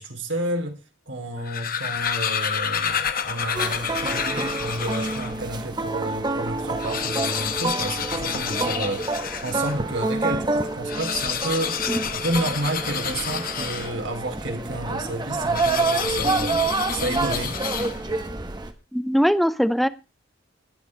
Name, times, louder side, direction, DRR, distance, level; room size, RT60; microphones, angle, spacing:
voice 1, 0.0-9.2 9.4-11.8 12.1-17.6, right 1 dB, 65° right, 5 dB, 2.7 m, -30 dB
sound 1, 1.3-5.4 6.0-6.1 6.3-6.4 6.7-9.8 10.8-14.2 15.5-18.2, left 8 dB, 45° left, 1.2 m, -29 dB
sound 2, 3.5-18.7, right 3 dB, 20° right, 1.4 m, -28 dB
voice 2, 18.9-19.9, equal, ahead, 11 dB, 0.6 m, -21 dB
20.0 x 7.0 x 4.1 m, 0.29 s
head